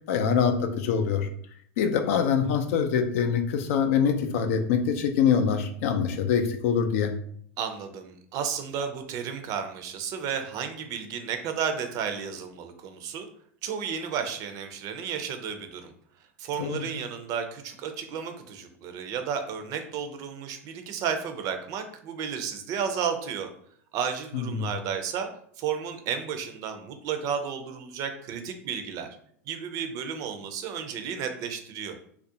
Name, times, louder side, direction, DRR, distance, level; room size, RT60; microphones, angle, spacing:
voice 1, 0.1-1.3 1.8-7.1 16.6-16.9 24.3-24.7, left 7 dB, 65° left, 7 dB, 0.4 m, -24 dB
voice 2, 7.6-13.3 13.6-15.9 16.4-23.5 23.9-25.3 25.6-29.1 29.5-31.9, right 7 dB, 45° right, 6 dB, 0.4 m, -32 dB
2.4 x 2.0 x 2.7 m, 0.63 s
hypercardioid pair, 95°, 8 cm